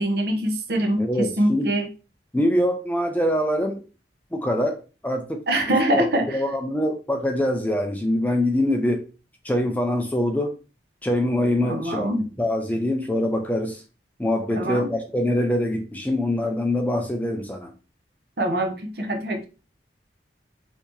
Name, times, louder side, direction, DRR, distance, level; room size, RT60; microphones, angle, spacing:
voice 1, 0.0-1.9 5.5-6.4 11.6-12.3 14.5-14.9 18.4-19.4, right 1 dB, 60° right, 0.8 m, -24 dB
voice 2, 1.0-1.7 2.3-3.8 4.3-4.8 5.0-5.4 5.9-9.0 9.4-10.5 11.0-12.1 12.4-13.8 14.2-17.7, left 1 dB, 10° left, 0.4 m, -24 dB
3.4 x 2.7 x 3.1 m
head